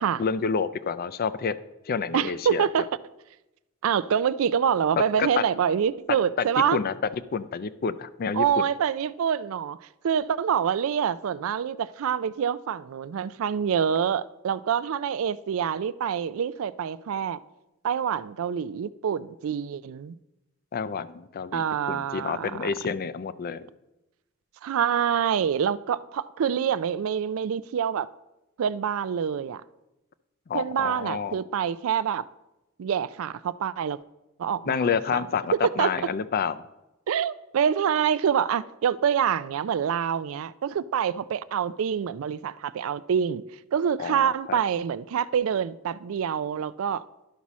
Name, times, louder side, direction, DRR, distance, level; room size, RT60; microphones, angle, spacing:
voice 1, 0.2-1.6 1.8-2.7 5.0-5.3 6.7-6.9 7.3-8.5 20.7-23.6 30.5-31.4 34.7-36.6 44.0-44.6, left 6 dB, 45° left, 0.4 m, -29 dB
voice 2, 2.1-2.9 3.8-6.8 8.3-9.8 10.0-17.4 17.8-20.1 21.5-22.7 24.6-28.1 28.6-29.6 30.5-32.3 32.8-34.0 34.4-35.2 35.5-35.9 37.1-43.4 43.7-47.0, right 8 dB, 70° right, 0.3 m, -26 dB
11.5 x 6.1 x 4.1 m
head